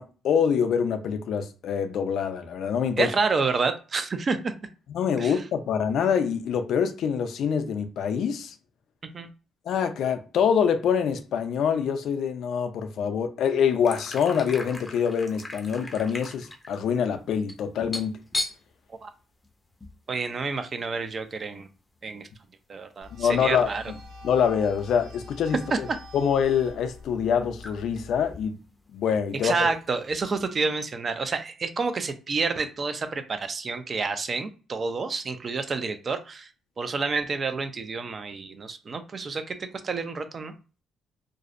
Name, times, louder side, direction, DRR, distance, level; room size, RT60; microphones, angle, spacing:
voice 1, 0.0-3.1 4.9-8.5 9.7-18.2 23.1-23.7 24.2-25.6 26.1-28.5 28.9-29.7, left 7 dB, 70° left, 0.4 m, -25 dB
voice 2, 3.0-4.5 5.2-5.4 9.1-9.3 19.0-19.1 20.1-21.7 22.0-22.3 22.7-23.8 25.7-25.8 29.4-36.5 36.8-40.5, right 4 dB, 40° right, 0.4 m, -29 dB
sound 1, 13.8-20.0 20.3-20.4 20.8-21.1 22.0-22.1 23.6-23.8 24.8-24.9 25.1-25.9 26.4-26.5 27.2-27.3 27.6-28.0 28.2-30.5, left 1 dB, 15° left, 0.5 m, -38 dB
sound 2, 23.0-28.4, left 3 dB, 80° right, 0.8 m, -45 dB
2.5 x 2.0 x 2.4 m
cardioid pair, 90°, 0 cm